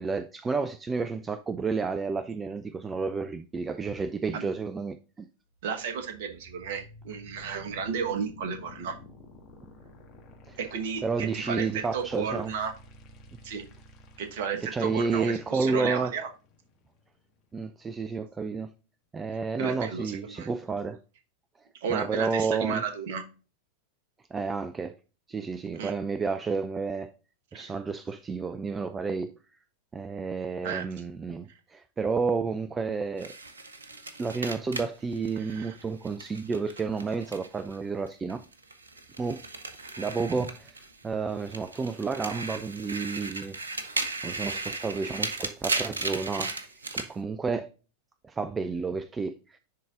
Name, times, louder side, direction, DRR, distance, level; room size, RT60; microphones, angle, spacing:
voice 1, 0.0-5.3 10.5-10.6 11.0-12.5 14.7-16.1 17.5-18.7 19.1-21.0 21.9-22.8 24.3-24.9 25.3-27.1 27.5-29.3 29.9-33.3 34.2-38.4 39.2-39.4 40.0-43.6 44.2-46.5 46.9-47.7 48.2-49.6, right 4 dB, 15° right, 0.4 m, -31 dB
sound 1, 5.5-17.5, left 2 dB, 35° left, 1.5 m, -51 dB
voice 2, 5.6-9.0 10.6-12.7 13.4-13.6 14.2-16.3 19.6-20.5 21.8-23.2 25.7-25.9 27.5-27.7 30.6-30.8 35.4-35.8, right 6 dB, 50° right, 1.2 m, -33 dB
sound 2, 33.2-37.8 38.1-41.0 41.4-47.1, right 3 dB, 75° right, 0.8 m, -36 dB
10.5 x 3.9 x 2.4 m
figure-of-eight pair, 90°, 0 cm